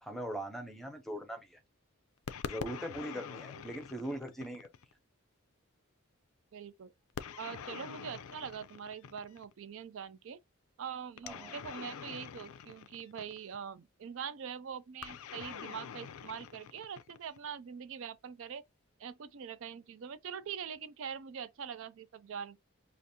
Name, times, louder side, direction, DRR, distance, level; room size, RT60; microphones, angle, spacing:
voice 1, 0.0-1.6 2.4-4.7 11.2-11.6, right 1 dB, ahead, 0.5 m, -41 dB
sound 1, 2.3-4.9 7.2-9.5 11.2-13.6 15.0-17.5, left 7 dB, 75° left, 0.4 m, -45 dB
voice 2, 6.5-6.9 7.4-10.4 10.8-18.6 19.0-22.6, right 7 dB, 60° right, 0.4 m, -43 dB
4.9 x 2.5 x 2.7 m
head